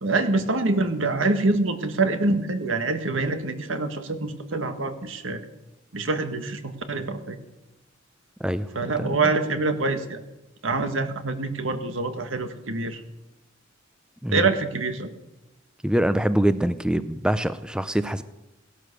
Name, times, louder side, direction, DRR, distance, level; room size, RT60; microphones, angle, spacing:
voice 1, 0.0-5.4 5.9-7.4 8.8-10.2 10.6-13.0 14.3-15.1, right 3 dB, 70° right, 8 dB, 1.7 m, -25 dB
voice 2, 9.0-9.3 14.2-14.5 15.8-18.2, right 1 dB, 5° right, 13 dB, 0.5 m, -24 dB
17.0 x 12.5 x 6.7 m, 0.92 s
head